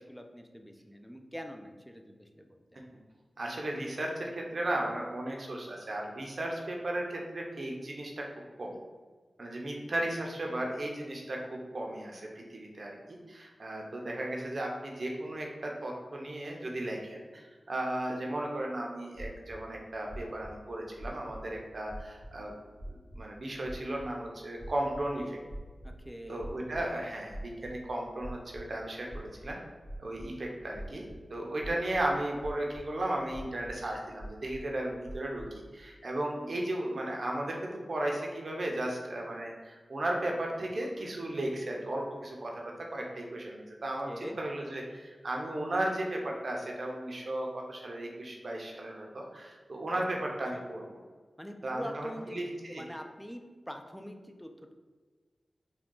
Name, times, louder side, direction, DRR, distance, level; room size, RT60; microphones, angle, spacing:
voice 1, 0.0-2.8 25.8-26.5 44.0-44.4 51.4-52.4 52.7-54.7, equal, 5° left, 4 dB, 0.5 m, -44 dB
voice 2, 3.4-8.2 8.6-8.8 9.4-22.5 22.9-25.4 26.3-29.6 30.0-35.4 35.7-44.1 44.4-51.0 51.6-52.4 52.7-52.8, right 1 dB, 65° right, 0 dB, 0.7 m, -35 dB
sound 1, 19.1-19.6 20.1-20.5 21.0-21.5 21.9-22.3 22.8-23.2 23.6-24.0 24.6-25.0 25.5-26.0 26.4-26.8 27.3-27.8 28.2-28.6 29.1-30.3 30.7-31.2 31.6-32.1 32.4-32.9 33.3-33.7 34.2-34.7 35.0-35.5, right 1 dB, 65° left, 1.3 m, -43 dB
3.6 x 2.3 x 3.7 m, 1.4 s
cardioid pair, 40°, 0 cm